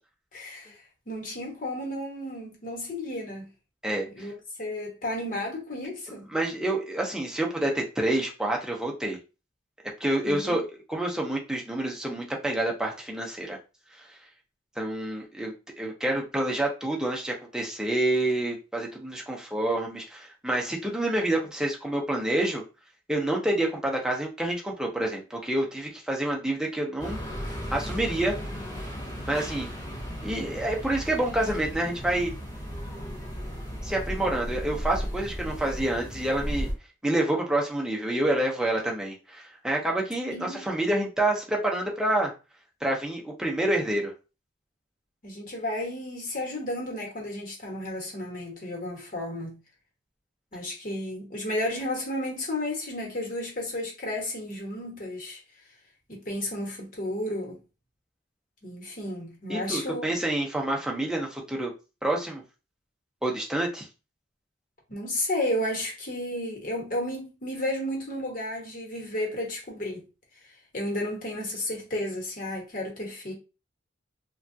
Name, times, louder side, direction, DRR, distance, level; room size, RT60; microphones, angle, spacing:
voice 1, 0.3-0.8 1.1-3.4 4.1-6.3 10.2-10.6 40.3-40.7 45.2-49.6 50.5-55.4 56.1-57.6 58.6-60.1 64.9-70.0 70.7-73.3, left 1 dB, 45° left, 1.1 m, -32 dB
voice 2, 3.8-4.3 6.3-9.2 10.0-10.6 10.9-13.6 14.0-14.1 14.8-22.6 23.1-27.2 27.7-28.3 29.3-29.7 30.2-32.3 33.8-36.7 37.0-42.3 42.8-44.1 59.5-61.7 62.0-62.4 63.2-63.9, right 1 dB, 5° right, 0.6 m, -28 dB
sound 1, 27.0-36.7, equal, 20° left, 1.0 m, -35 dB
3.3 x 2.3 x 2.6 m
head